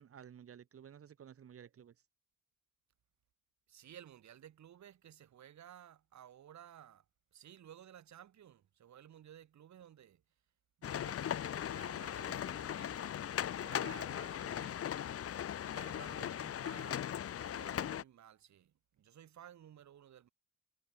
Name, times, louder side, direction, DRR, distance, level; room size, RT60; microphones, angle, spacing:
voice 1, 0.0-1.9 13.7-14.2, right 8 dB, 50° right, 1.7 m, -53 dB
voice 2, 3.7-7.1 7.3-10.2 10.8-13.2 13.6-14.8 15.6-20.3, right 10 dB, 65° right, 6.7 m, -56 dB
sound 1, 10.8-18.0, left 10 dB, 50° left, 0.9 m, -39 dB
cardioid pair, 90°, 30 cm